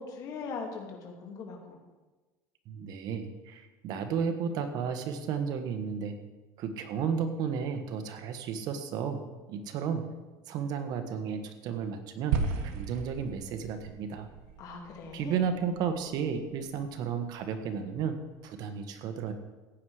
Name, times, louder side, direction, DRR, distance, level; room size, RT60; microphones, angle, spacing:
voice 1, 0.0-1.8 14.6-15.4, left 4 dB, 45° left, 1 dB, 2.6 m, -40 dB
voice 2, 2.7-6.1 6.6-10.1 10.5-12.4 12.7-14.3 15.1-19.3, right 7 dB, 55° right, 7 dB, 1.5 m, -33 dB
sound 1, 12.3-16.7, right 5 dB, 75° right, 1.5 m, -36 dB
15.0 x 9.5 x 5.0 m, 1.2 s
cardioid pair, 140°, 8 cm